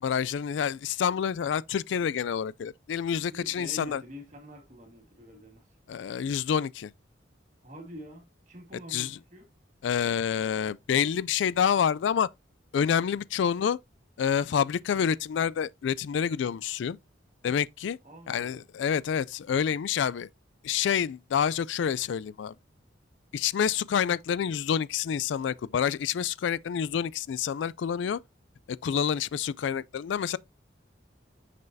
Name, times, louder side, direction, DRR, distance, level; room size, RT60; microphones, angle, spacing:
voice 1, 0.0-4.0 5.9-6.9 8.9-9.2 9.8-12.3 12.7-13.8 14.2-17.0 17.4-18.0 18.3-20.3 20.6-22.5 23.3-28.2 28.7-30.4, left 8 dB, 75° left, 0.3 m, -28 dB
voice 2, 3.3-5.7 7.6-9.5 18.0-18.6, equal, 40° right, 2.1 m, -46 dB
6.7 x 6.4 x 2.6 m
head